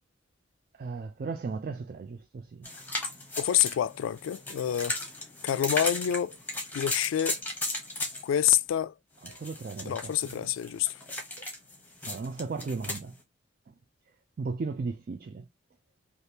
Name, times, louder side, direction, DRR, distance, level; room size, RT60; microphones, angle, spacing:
voice 1, 0.7-2.7 9.2-10.5 12.1-13.2 13.7-13.8 14.4-15.5, right 4 dB, 45° right, 0.3 m, -36 dB
sound 1, 2.6-8.6 9.2-13.0, left 2 dB, 10° left, 0.8 m, -36 dB
voice 2, 3.4-5.0 5.4-6.4 6.7-7.4 8.2-8.9 9.9-10.9, left 10 dB, 85° left, 0.3 m, -27 dB
3.3 x 2.4 x 2.7 m
head